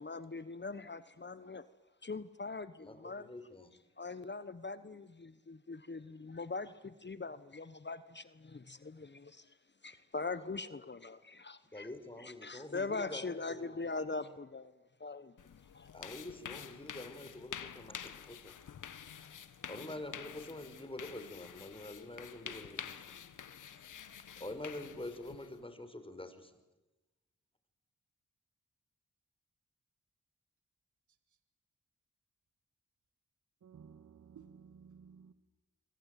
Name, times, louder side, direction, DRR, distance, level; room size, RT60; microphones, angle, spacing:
voice 1, 0.0-1.7 2.0-3.3 4.0-9.5 9.8-11.9 12.2-14.7 15.0-15.9, left 3 dB, 35° left, 1.2 m, -42 dB
voice 2, 2.8-3.7 11.7-14.1 15.9-18.6 19.7-23.2 24.4-26.6, left 1 dB, 20° left, 5.3 m, -46 dB
sound 1, 15.4-25.6, left 8 dB, 85° left, 1.4 m, -48 dB
voice 3, 33.6-35.3, right 6 dB, 75° right, 1.6 m, -55 dB
26.5 x 24.0 x 9.3 m
cardioid pair, 40°, 30 cm